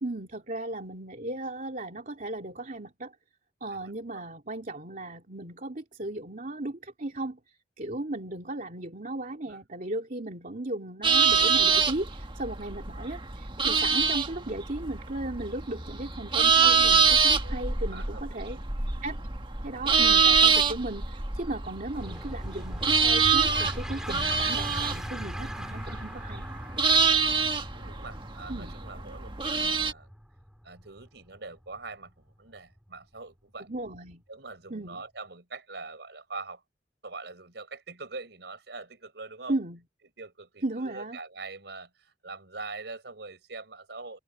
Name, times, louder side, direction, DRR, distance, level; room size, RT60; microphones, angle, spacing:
voice 1, 0.0-3.1 3.6-7.4 7.8-18.6 19.0-19.2 19.6-26.5 28.5-28.7 33.7-34.2 34.7-35.0 39.5-39.8 40.6-41.2, right 2 dB, 50° right, 2.7 m, -36 dB
voice 2, 3.7-4.2 9.3-9.6 17.4-18.6 27.2-30.1 30.6-33.7 34.3-36.6 37.0-39.6 40.2-44.2, right 3 dB, 65° right, 5.4 m, -43 dB
sound 1, 11.0-29.9, right 5 dB, 30° right, 1.7 m, -25 dB
sound 2, 21.9-33.0, equal, 5° right, 3.0 m, -40 dB
head